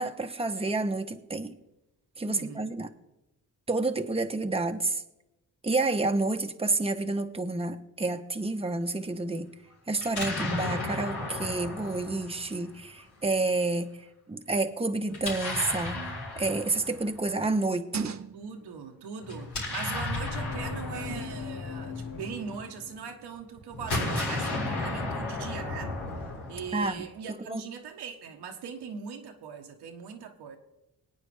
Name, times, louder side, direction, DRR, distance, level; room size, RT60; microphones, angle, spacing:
voice 1, 0.0-1.6 2.2-2.9 3.7-5.0 5.6-9.5 9.9-13.9 14.3-18.2 26.7-27.1 27.4-27.6, right 2 dB, 15° right, 1.1 m, -29 dB
voice 2, 2.3-2.7 18.3-26.0 26.5-30.6, right 6 dB, 85° right, 1.5 m, -40 dB
Explosion, 10.0-13.0 15.1-17.3 19.2-22.7 23.7-27.1, left 2 dB, 80° left, 4.8 m, -34 dB
sound 1, 15.9-16.3 17.5-18.7 20.9-21.5 23.4-23.7 24.2-24.3, right 8 dB, 45° right, 0.7 m, -40 dB
sound 2, 20.0-23.5, left 5 dB, 55° left, 1.5 m, -40 dB
22.0 x 9.0 x 3.5 m
cardioid pair, 65°, 39 cm